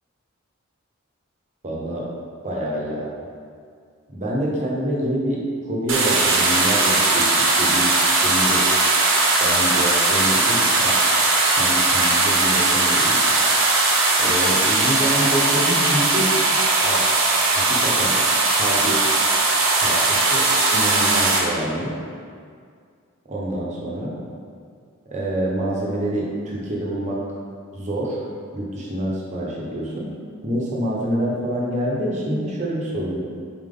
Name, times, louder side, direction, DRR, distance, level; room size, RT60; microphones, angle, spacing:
voice 1, 1.6-2.0 2.4-3.1 4.1-7.9 8.2-8.6 9.4-10.9 11.5-13.2 14.2-16.3 16.8-17.0 17.5-18.1 18.6-19.0 19.8-21.9 23.3-24.2 25.1-27.2 27.7-28.2 28.5-30.1 30.4-33.2, right 1 dB, 35° right, -4 dB, 1.1 m, -26 dB
sound 1, 5.9-21.4, right 3 dB, 65° right, 1.0 m, -19 dB
5.8 x 4.4 x 3.8 m, 2.2 s
head